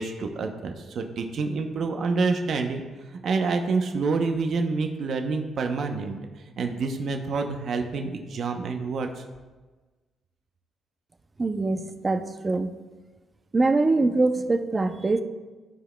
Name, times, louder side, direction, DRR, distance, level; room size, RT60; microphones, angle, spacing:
voice 1, 0.0-2.8 3.2-6.2 6.6-9.2, right 4 dB, 60° right, 4 dB, 0.7 m, -27 dB
voice 2, 11.4-12.7 13.5-15.2, right 3 dB, 25° right, 9 dB, 0.5 m, -23 dB
14.0 x 4.8 x 2.2 m, 1.3 s
cardioid pair, 90°, 0 cm